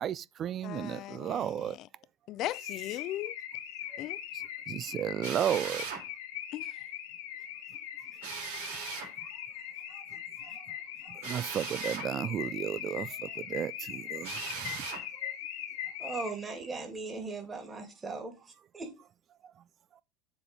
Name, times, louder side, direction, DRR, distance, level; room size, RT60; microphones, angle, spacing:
voice 1, 0.0-1.8 3.9-4.0 4.7-5.9 9.2-9.3 9.9-10.0 10.4-10.7 11.0-14.9 15.2-15.3, right 10 dB, 40° right, 0.3 m, -34 dB
voice 2, 0.6-1.9 2.3-3.3 4.0-4.2 6.5-6.8, left 14 dB, 50° left, 0.4 m, -38 dB
Car / Alarm, 2.5-16.6, left 10 dB, 70° left, 1.1 m, -41 dB
Drill, 5.2-6.0 8.2-9.1 11.2-12.1 14.2-15.0, right 6 dB, 75° right, 2.9 m, -39 dB
voice 3, 16.0-18.3 18.7-18.9, right 3 dB, 25° right, 2.7 m, -38 dB
7.2 x 3.9 x 5.2 m
hypercardioid pair, 85°, 0 cm